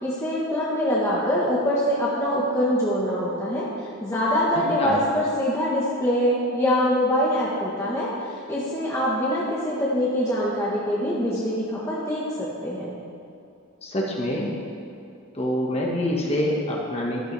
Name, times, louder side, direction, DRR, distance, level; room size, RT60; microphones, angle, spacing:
voice 1, 0.0-3.7 4.0-8.1 8.5-13.0, equal, 15° left, -7 dB, 1.4 m, -24 dB
voice 2, 13.8-14.5 15.3-17.2, left 1 dB, 30° left, -2 dB, 1.7 m, -25 dB
14.0 x 11.5 x 3.5 m, 2.7 s
head